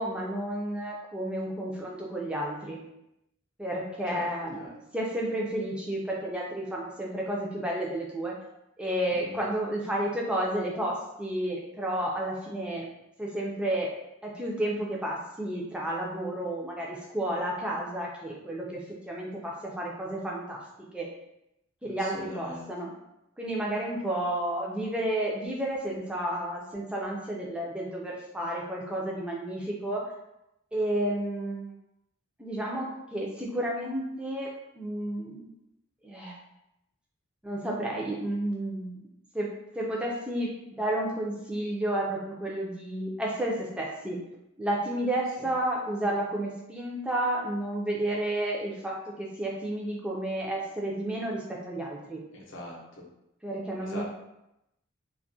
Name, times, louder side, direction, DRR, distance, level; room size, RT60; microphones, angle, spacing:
voice 1, 0.0-2.8 3.6-8.3 8.8-12.9 13.2-13.9 14.2-20.6 20.9-21.1 21.8-22.9 23.4-30.1 30.7-31.7 32.4-35.5 36.0-36.4 37.4-39.1 39.3-39.5 39.7-40.5 40.8-44.2 44.6-52.2 53.4-54.0, right 1 dB, 5° right, -3 dB, 0.3 m, -31 dB
voice 2, 4.1-4.7 9.2-9.4 21.8-22.7 45.4-45.6 52.3-53.0 53.8-54.0, left 1 dB, 60° left, -3 dB, 0.6 m, -43 dB
2.3 x 2.1 x 2.6 m, 0.87 s
head